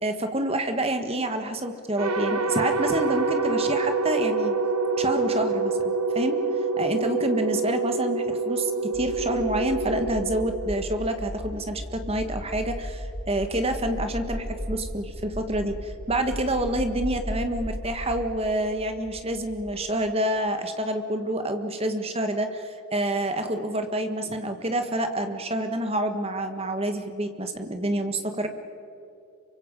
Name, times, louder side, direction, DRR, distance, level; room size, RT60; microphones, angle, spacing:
voice 1, 0.0-4.6 5.0-6.4 6.8-28.5, right 1 dB, 25° right, 7 dB, 1.6 m, -28 dB
sound 1, 2.0-11.3, right 3 dB, 90° right, 1.3 m, -26 dB
sound 2, 8.9-19.9, equal, 15° left, 1.8 m, -36 dB
28.0 x 24.5 x 5.4 m, 2.8 s
head